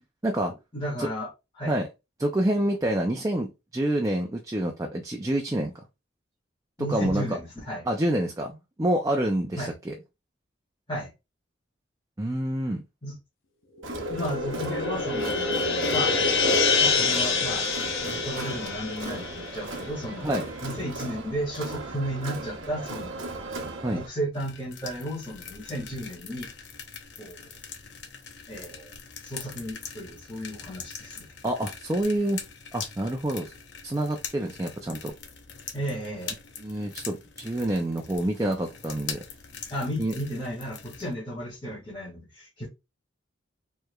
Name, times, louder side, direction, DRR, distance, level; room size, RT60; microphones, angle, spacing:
voice 1, 0.7-1.3 1.6-1.7 6.8-7.8 9.6-9.7 10.9-11.1 13.0-13.1 14.1-16.2 16.8-17.7 18.0-20.3 20.6-23.2 23.9-26.5 27.2-27.5 28.5-28.9 29.2-31.3 35.7-36.4 39.7-42.7, equal, 25° left, 2.1 m, -34 dB
voice 2, 2.2-5.7 6.9-7.4 7.9-9.9 12.2-12.8 20.2-20.4 23.8-24.0 31.4-32.4 32.7-33.5 33.8-35.1 36.6-39.2 40.0-40.1, right 1 dB, 15° right, 0.5 m, -27 dB
sound 1, 13.8-20.4, left 4 dB, 85° left, 0.9 m, -26 dB
Crowd, 13.8-24.1, right 2 dB, 85° right, 1.0 m, -38 dB
sound 2, 24.3-41.1, left 6 dB, 60° left, 0.7 m, -42 dB
4.7 x 3.2 x 2.3 m
head